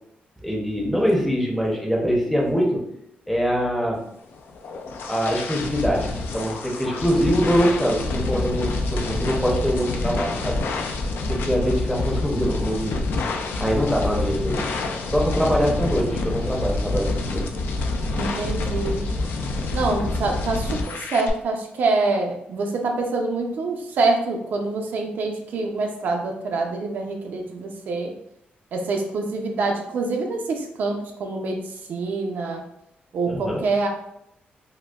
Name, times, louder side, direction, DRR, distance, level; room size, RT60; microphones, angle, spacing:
voice 1, 0.4-2.8 3.3-4.0 5.1-10.6 11.3-13.0 13.6-14.6 15.1-17.4 33.3-33.6, equal, 5° left, -2 dB, 0.6 m, -23 dB
sound 1, 4.3-21.3, left 2 dB, 80° left, 0.4 m, -27 dB
voice 2, 18.2-19.1 19.7-28.1 28.7-32.6 33.1-33.9, right 3 dB, 60° right, 2 dB, 0.4 m, -25 dB
4.9 x 2.1 x 2.3 m, 0.78 s
wide cardioid pair, 175°, 4 cm